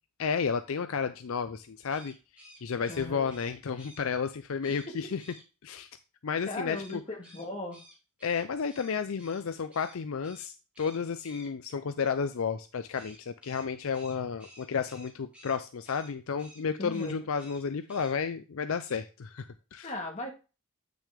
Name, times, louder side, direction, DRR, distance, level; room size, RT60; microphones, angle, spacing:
voice 1, 0.2-2.1 2.6-5.2 5.6-5.9 6.2-7.0 8.2-19.9, left 6 dB, 65° left, 10 dB, 0.5 m, -32 dB
sound 1, 1.8-4.0 4.6-4.9 5.2-5.4 6.7-9.4 9.7-10.0 10.2-10.5 10.7-11.5 12.9-15.6 15.8-16.1 16.4-16.6 16.9-17.6 17.9-18.1, equal, 5° right, 4.0 m, -53 dB
voice 2, 2.9-3.3 6.5-7.8 16.8-17.2 19.8-20.3, left 1 dB, 30° left, 2 dB, 1.8 m, -37 dB
8.4 x 6.1 x 3.5 m, 0.32 s
head